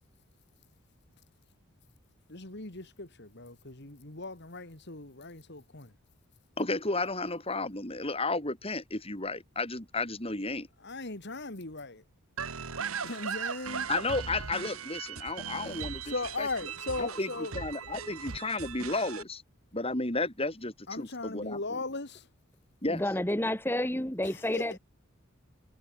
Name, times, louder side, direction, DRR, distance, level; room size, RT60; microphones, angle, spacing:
voice 1, 2.3-5.9 10.8-12.0 13.0-13.9 16.0-17.5 20.9-22.2 24.5-24.6, left 3 dB, 55° left, 2.6 m, -38 dB
voice 2, 6.6-10.7 13.9-16.7 17.0-19.4 19.7-21.8 22.8-23.0, left 2 dB, 25° left, 5.5 m, -33 dB
sound 1, 12.4-19.2, right 6 dB, 85° right, 1.7 m, -38 dB
voice 3, 22.9-24.8, left 1 dB, 10° left, 2.2 m, -30 dB
head